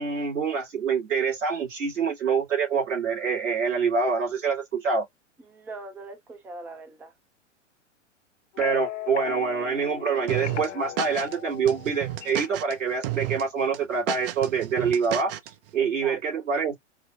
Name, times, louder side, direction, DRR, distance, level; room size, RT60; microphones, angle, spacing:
voice 1, 0.0-5.0 8.6-15.3 15.7-16.7, right 5 dB, 85° right, 2.8 m, -26 dB
voice 2, 5.4-7.1 15.8-16.2, right 3 dB, 5° right, 0.4 m, -41 dB
sound 1, 8.5-12.6, left 11 dB, 70° left, 0.8 m, -37 dB
sound 2, 10.3-11.4 11.7-12.7 13.0-13.4 13.7-15.5, right 14 dB, 50° right, 0.6 m, -32 dB
4.8 x 2.0 x 2.4 m
hypercardioid pair, 115°, 37 cm